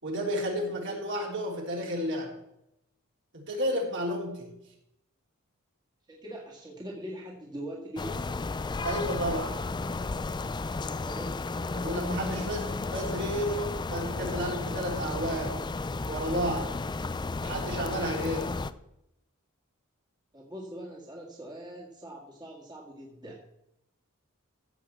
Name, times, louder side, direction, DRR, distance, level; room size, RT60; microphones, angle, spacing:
voice 1, 0.0-2.3 3.3-4.5 8.8-9.5 11.7-15.6 16.1-16.7 17.4-18.5, equal, 55° right, -1 dB, 3.3 m, -32 dB
voice 2, 6.1-8.3 10.9-11.5 20.3-23.4, right 1 dB, 20° right, -3 dB, 1.9 m, -42 dB
sound 1, 8.0-18.7, left 3 dB, 20° left, 0.4 m, -33 dB
15.0 x 5.0 x 7.1 m, 0.81 s
head